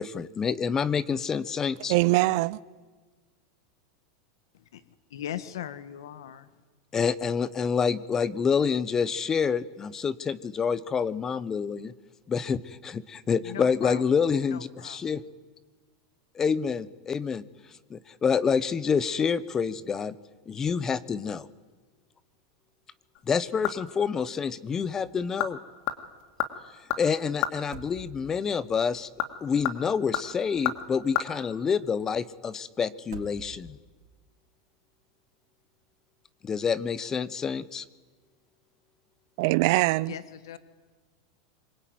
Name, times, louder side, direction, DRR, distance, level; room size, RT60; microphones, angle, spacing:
voice 1, 0.0-1.9 6.9-11.9 12.3-15.2 16.3-17.4 17.9-20.2 20.5-21.5 23.3-25.6 27.0-29.1 29.4-33.8 36.4-37.8, left 6 dB, 20° left, 1.1 m, -27 dB
voice 2, 1.9-2.6 39.4-40.1, right 20 dB, 60° right, 0.8 m, -22 dB
voice 3, 4.5-6.6 13.4-15.0 40.1-40.6, left 10 dB, 85° left, 1.6 m, -40 dB
sound 1, 23.1-24.1 24.4-24.5 25.1-25.5 25.8-27.6 28.9-31.3 31.5-31.6, left 12 dB, 55° left, 2.8 m, -32 dB
sound 2, 24.7-25.2 25.5-25.6 27.5-28.5 30.2-31.1 32.9-33.9, right 5 dB, 85° right, 4.0 m, -47 dB
26.0 x 24.0 x 9.5 m
supercardioid pair, 130°, 2 cm